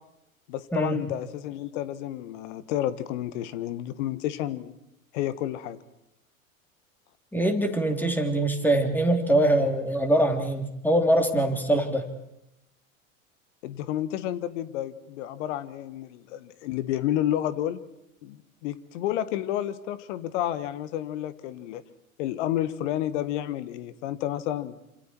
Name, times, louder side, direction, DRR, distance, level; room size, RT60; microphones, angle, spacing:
voice 1, 0.5-4.7 5.1-5.8 13.6-17.8 18.2-21.8 22.2-24.8, left 12 dB, 60° left, 15 dB, 1.7 m, -30 dB
voice 2, 7.3-12.1, right 1 dB, 5° left, 5 dB, 3.4 m, -23 dB
27.5 x 27.0 x 4.6 m, 0.85 s
hypercardioid pair, 90°, 42 cm